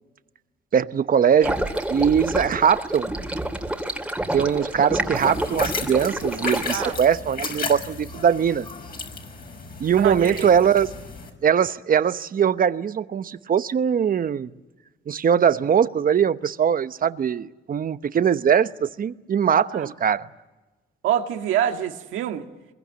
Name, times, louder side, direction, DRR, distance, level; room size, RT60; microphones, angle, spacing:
voice 1, 0.7-1.6 1.9-3.1 4.3-8.7 9.8-10.9 11.4-14.5 15.1-20.3, right 8 dB, 45° right, 13 dB, 1.0 m, -21 dB
sound 1, 1.4-6.9, right 1 dB, 5° right, 2.5 m, -28 dB
sound 2, 5.1-11.3, left 4 dB, 50° left, 5.5 m, -34 dB
voice 2, 10.0-10.5 19.7-19.9 21.0-22.5, right 10 dB, 90° right, 4 dB, 2.0 m, -26 dB
23.5 x 22.5 x 9.4 m, 1.2 s
cardioid pair, 90°, 20 cm